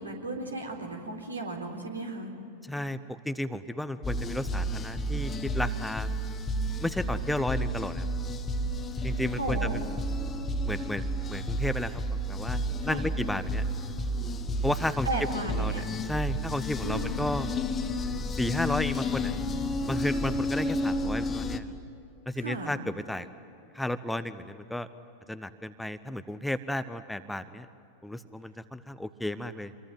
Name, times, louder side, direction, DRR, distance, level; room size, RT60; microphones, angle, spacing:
voice 1, 0.0-2.3 9.0-9.1 9.4-9.7 12.9-13.1 15.1-15.8 16.8-17.2 22.4-22.7, right 2 dB, 80° right, 2 dB, 3.9 m, -35 dB
voice 2, 2.6-6.1 6.8-8.1 9.0-9.8 10.6-12.0 12.3-13.7 14.6-15.1 15.5-15.8 16.1-17.5 18.4-19.3 19.9-21.7 22.3-23.3 23.7-24.9 25.3-27.7 28.0-29.7, left 1 dB, 5° left, 12 dB, 0.9 m, -33 dB
sound 1, 4.0-21.6, equal, 20° left, 1.4 m, -31 dB
27.5 x 23.0 x 9.3 m, 2.7 s
figure-of-eight pair, 90°, 0 cm